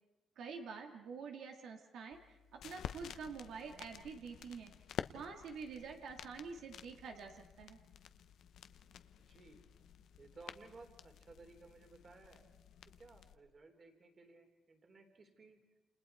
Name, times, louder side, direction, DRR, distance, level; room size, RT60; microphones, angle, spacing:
voice 1, 0.4-4.7 5.1-7.8, right 5 dB, 80° right, 3 dB, 2.4 m, -47 dB
vinyl intro noise, 2.1-13.4, left 9 dB, 75° left, 0.9 m, -51 dB
voice 2, 9.2-9.6 10.2-12.5 12.8-15.6, right 3 dB, 35° right, 5 dB, 3.2 m, -58 dB
29.5 x 29.0 x 4.6 m, 1.0 s
cardioid pair, 150°, 0 cm